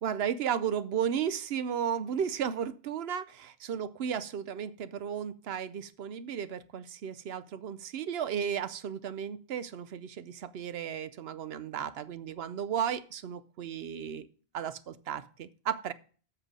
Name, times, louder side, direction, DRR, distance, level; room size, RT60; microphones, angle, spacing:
voice 1, 0.0-14.3 14.5-15.9, right 8 dB, 75° right, 14 dB, 0.9 m, -34 dB
7.7 x 6.8 x 6.1 m, 0.41 s
omnidirectional pair, 1.0 m